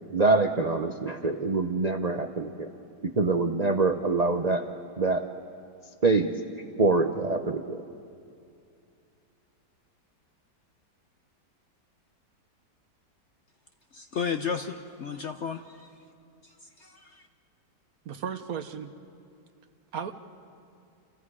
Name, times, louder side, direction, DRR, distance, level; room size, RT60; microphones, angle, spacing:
voice 1, 0.1-2.7 3.0-4.7 5.0-5.3 6.0-6.3 6.8-7.8, right 3 dB, 40° right, 5 dB, 0.6 m, -25 dB
voice 2, 13.9-15.9 16.4-17.3, left 6 dB, 55° left, 7 dB, 0.8 m, -34 dB
voice 3, 18.0-18.9 19.9-20.1, right 7 dB, 60° right, 9 dB, 1.3 m, -34 dB
29.0 x 28.5 x 4.9 m, 2.5 s
omnidirectional pair, 1.9 m